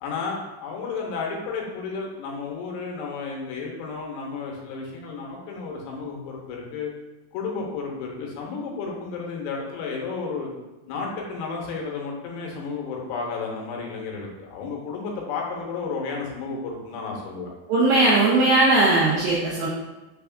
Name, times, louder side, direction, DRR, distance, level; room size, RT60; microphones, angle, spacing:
voice 1, 0.0-6.9 7.3-10.5 10.9-17.5, left 4 dB, 85° left, -1 dB, 2.8 m, -32 dB
voice 2, 17.7-19.7, right 2 dB, 85° right, -5 dB, 2.1 m, -19 dB
6.1 x 3.5 x 2.3 m, 1.1 s
omnidirectional pair, 4.9 m